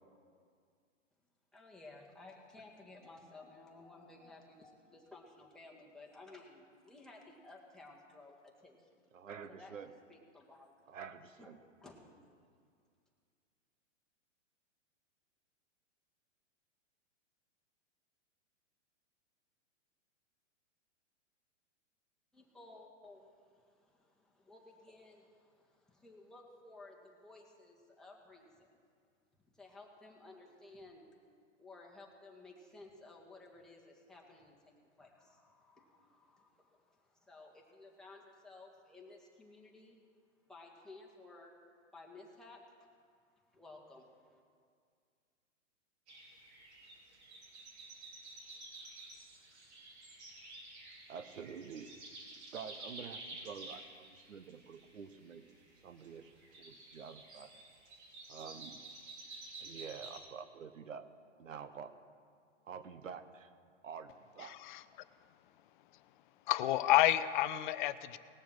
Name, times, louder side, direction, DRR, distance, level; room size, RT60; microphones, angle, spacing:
voice 1, 1.5-9.0 9.5-9.7 10.1-10.9 11.4-11.5 11.8-12.1 22.3-28.8 29.4-31.1 31.6-40.0 40.4-41.5 41.9-42.6 43.5-44.4, left 2 dB, ahead, -3 dB, 1.7 m, -56 dB
voice 2, 9.1-9.9 10.9-11.6 51.1-51.9 52.5-55.4 55.8-57.5 58.3-58.8 59.6-61.0 61.4-61.9 62.6-63.5 63.8-64.6, right 7 dB, 85° right, 11 dB, 1.0 m, -48 dB
sound 1, 46.1-60.2, right 2 dB, 60° right, 3.3 m, -52 dB
voice 3, 64.4-64.8 66.5-68.2, left 14 dB, 40° left, 14 dB, 0.5 m, -30 dB
19.0 x 7.0 x 6.2 m, 2.2 s
hypercardioid pair, 120°, 38 cm